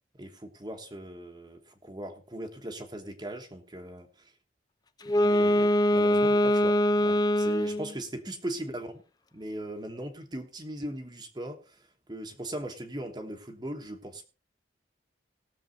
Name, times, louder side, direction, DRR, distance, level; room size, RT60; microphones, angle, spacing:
voice 1, 0.2-4.3 5.2-9.0 9.3-14.2, right 1 dB, 25° right, 4 dB, 1.2 m, -39 dB
Wind instrument woodwind instrument, 5.0-7.9, left 1 dB, 20° left, 0.6 m, -23 dB
18.5 x 7.0 x 4.0 m, 0.34 s
head